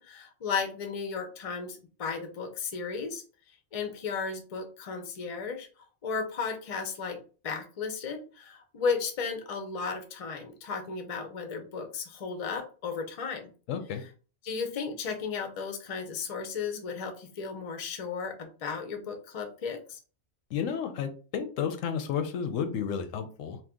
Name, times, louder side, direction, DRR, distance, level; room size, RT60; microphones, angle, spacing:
voice 1, 0.0-3.2 3.7-5.7 6.0-13.5 14.4-20.0, left 5 dB, 45° left, 5 dB, 0.5 m, -34 dB
voice 2, 13.7-14.0 20.5-23.6, left 7 dB, 85° left, 8 dB, 1.0 m, -32 dB
2.8 x 2.4 x 3.5 m, 0.37 s
omnidirectional pair, 1.3 m